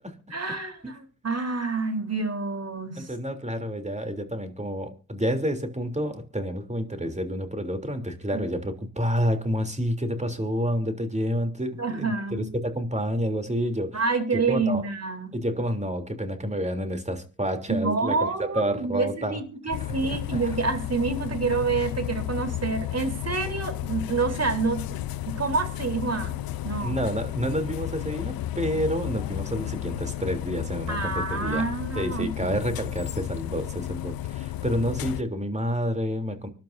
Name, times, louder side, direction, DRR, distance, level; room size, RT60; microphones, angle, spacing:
voice 1, 0.3-3.1 8.3-8.4 11.8-12.5 13.9-15.3 17.7-25.0 25.3-27.0 30.9-32.6, right 4 dB, 45° right, 3.8 m, -28 dB
voice 2, 3.0-14.0 14.3-14.8 15.3-19.4 20.0-20.4 26.8-31.7 31.9-36.5, equal, 20° right, 3.3 m, -29 dB
sound 1, 19.7-35.2, left 13 dB, 80° left, 0.7 m, -33 dB
25.5 x 12.0 x 2.7 m
supercardioid pair, 50°, 35 cm